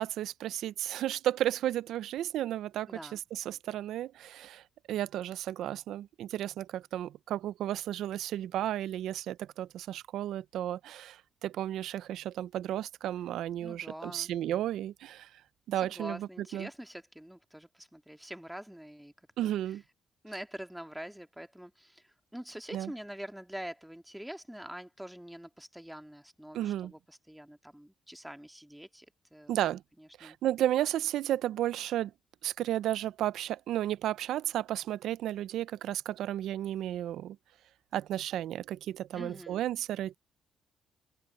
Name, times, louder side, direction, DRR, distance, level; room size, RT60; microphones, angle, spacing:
voice 1, 0.0-15.3 15.7-16.7 19.4-19.8 22.7-22.9 26.5-26.9 29.5-29.8 30.2-32.1 32.4-37.4 37.9-40.2, right 12 dB, 80° right, 0.5 m, -33 dB
voice 2, 2.9-3.2 13.6-14.3 15.8-19.1 19.4-19.8 20.2-29.6 30.0-30.4 39.1-39.6, equal, 5° right, 2.0 m, -45 dB
cardioid pair, 90°, 0 cm